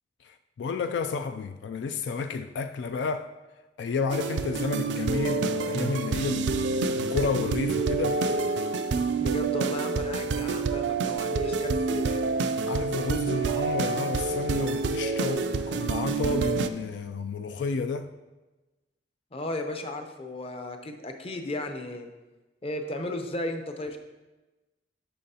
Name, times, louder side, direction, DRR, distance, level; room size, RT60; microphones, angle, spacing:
voice 1, 0.2-3.3 3.8-8.2 12.6-18.1, left 4 dB, 80° left, 0.3 m, -31 dB
sound 1, 4.1-16.7, right 4 dB, 80° right, 0.4 m, -27 dB
voice 2, 9.2-12.3 19.3-22.1 22.6-24.0, left 2 dB, 35° left, 0.7 m, -34 dB
8.9 x 6.5 x 2.8 m
head